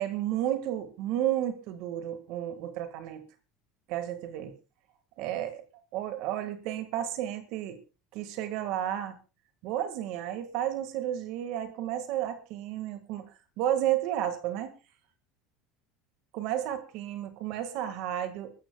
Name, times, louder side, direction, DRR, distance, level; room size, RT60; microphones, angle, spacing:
voice 1, 0.0-3.3 3.9-4.6 5.2-5.6 5.9-7.8 8.1-9.1 9.6-13.2 13.6-14.7 16.3-18.5, right 11 dB, 60° right, 9 dB, 1.6 m, -32 dB
29.5 x 13.5 x 2.2 m, 0.31 s
supercardioid pair, 140°, 0 cm